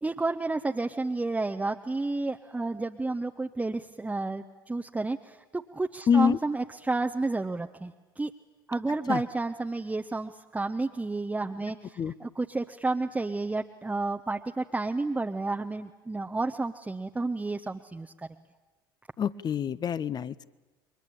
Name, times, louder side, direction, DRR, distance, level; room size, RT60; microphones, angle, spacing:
voice 1, 0.0-8.3 8.7-18.1, right 3 dB, 10° right, 5 dB, 0.9 m, -31 dB
voice 2, 6.1-6.4 9.1-9.2 12.0-12.1 19.2-20.5, left 7 dB, 35° left, 18 dB, 0.9 m, -26 dB
29.0 x 23.0 x 8.6 m, 1.2 s
figure-of-eight pair, 65°, 12 cm